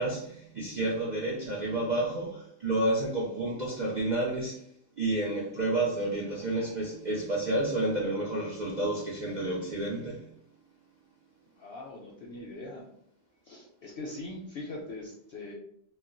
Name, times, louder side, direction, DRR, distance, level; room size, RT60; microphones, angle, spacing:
voice 1, 0.0-4.6 5.0-10.3, right 2 dB, 70° right, 0.4 m, -30 dB
voice 2, 11.6-12.9 13.4-15.5, left 2 dB, 65° left, 0.7 m, -41 dB
2.3 x 2.0 x 3.7 m
omnidirectional pair, 1.4 m